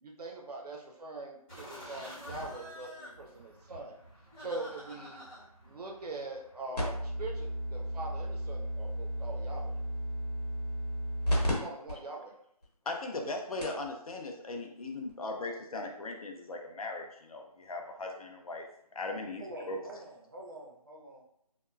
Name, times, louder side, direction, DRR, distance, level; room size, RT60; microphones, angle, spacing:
voice 1, 0.0-4.0 4.4-5.2 5.6-9.8 11.5-12.4 19.0-19.3, right 2 dB, 75° right, -1 dB, 0.6 m, -42 dB
sound 1, 1.5-6.6, equal, 5° left, 0.8 m, -48 dB
sound 2, 6.8-11.5 11.9-12.0 12.6-12.7 13.3-13.4 13.6-13.9 15.1-15.2, equal, 90° left, 1.2 m, -33 dB
voice 2, 12.9-18.6 19.0-19.4 19.7-19.8, left 2 dB, 65° left, 2 dB, 0.6 m, -38 dB
voice 3, 19.4-21.2, right 1 dB, 35° right, -1 dB, 0.5 m, -46 dB
2.8 x 2.2 x 2.2 m, 0.73 s
figure-of-eight pair, 170°, 20 cm